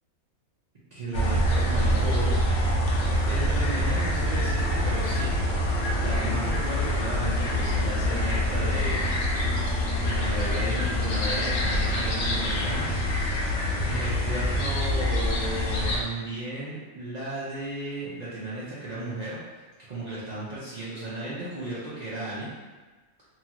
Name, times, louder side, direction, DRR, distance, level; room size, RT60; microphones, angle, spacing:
voice 1, 0.9-2.4 3.2-5.6 6.0-9.0 10.0-13.4 13.8-19.4 19.9-22.5, right 1 dB, 80° right, -8 dB, 0.3 m, -34 dB
sound 1, 1.1-16.0, left 1 dB, 60° left, 0.7 m, -25 dB
Piano, 1.3-5.8, right 11 dB, 25° left, 1.0 m, -45 dB
2.8 x 2.3 x 2.8 m, 1.3 s
omnidirectional pair, 1.5 m